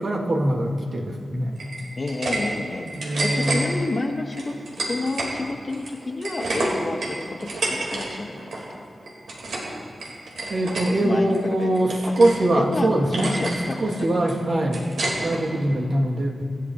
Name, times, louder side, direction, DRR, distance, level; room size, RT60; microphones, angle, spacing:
voice 1, 0.0-1.6 2.8-3.6 10.5-13.3 13.8-14.9 15.2-16.4, right 1 dB, 65° right, -3 dB, 3.1 m, -22 dB
sound 1, 1.6-2.4 2.7-3.6 4.3-5.3 5.7-8.1 8.3-8.6 9.0-9.7 10.0-10.9 11.3-12.4 12.7-12.8 13.1-13.6 13.9-15.4, right 2 dB, 85° right, 4.8 m, -29 dB
voice 2, 2.0-2.9 3.2-8.8 11.0-11.7 12.5-12.9 13.2-13.8 14.7-14.9 15.2-15.7, left 2 dB, 45° left, 2 dB, 2.0 m, -30 dB
27.0 x 13.5 x 3.3 m, 2.4 s
cardioid pair, 55°, 0 cm